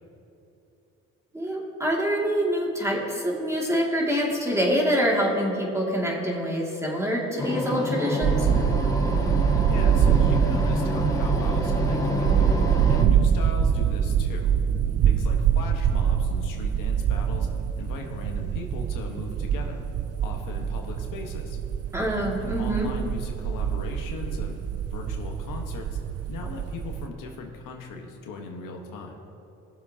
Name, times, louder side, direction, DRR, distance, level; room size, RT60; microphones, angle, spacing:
voice 1, 1.3-8.5 21.9-22.9, equal, 10° right, -3 dB, 2.4 m, -25 dB
sound 1, 7.4-13.0, left 2 dB, 10° left, 1.3 m, -28 dB
sound 2, 8.2-27.1, right 8 dB, 50° right, 0.5 m, -25 dB
voice 2, 9.7-12.5 12.9-14.5 15.0-17.5 17.7-19.8 20.2-21.6 22.4-24.6 24.9-26.0 26.3-29.2, left 4 dB, 80° left, 2 dB, 1.5 m, -38 dB
21.0 x 7.2 x 2.9 m, 2.9 s
cardioid pair, 95°, 32 cm